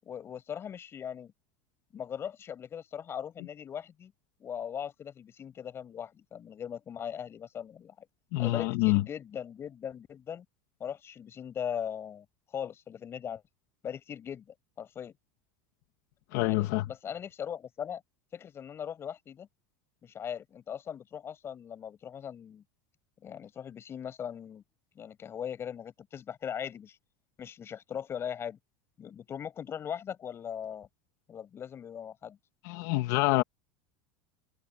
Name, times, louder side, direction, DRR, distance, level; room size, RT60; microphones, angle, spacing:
voice 1, 0.0-1.3 1.9-4.1 4.4-8.1 8.4-10.5 10.8-13.4 13.8-15.2 16.4-18.0 18.3-19.5 20.0-22.6 23.2-24.6 25.0-27.0 27.4-28.6 29.0-30.9 31.3-32.4, left 8 dB, 25° left, 7.4 m, -39 dB
voice 2, 8.3-9.0 16.3-16.9 32.6-33.4, left 19 dB, 60° left, 1.8 m, -26 dB
supercardioid pair, 160°, 10 cm